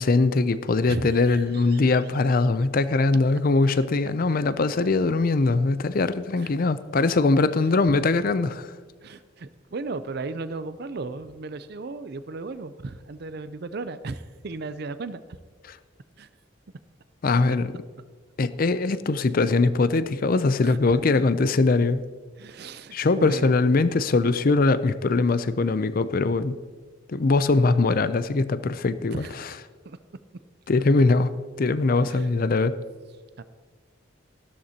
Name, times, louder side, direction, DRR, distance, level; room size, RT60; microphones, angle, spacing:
voice 1, 0.0-8.7 17.2-17.7 18.4-22.0 22.9-26.6 27.1-29.3 30.7-31.3 31.6-32.8, left 3 dB, 45° left, 0.5 m, -21 dB
voice 2, 0.9-1.8 6.4-6.5 7.6-7.7 9.0-15.2 16.2-16.3 20.6-21.1 22.4-23.6 29.1-29.6 29.8-30.0 30.8-31.1 32.0-32.3 33.1-33.4, right 3 dB, 55° right, 0.5 m, -36 dB
13.5 x 12.5 x 2.9 m
head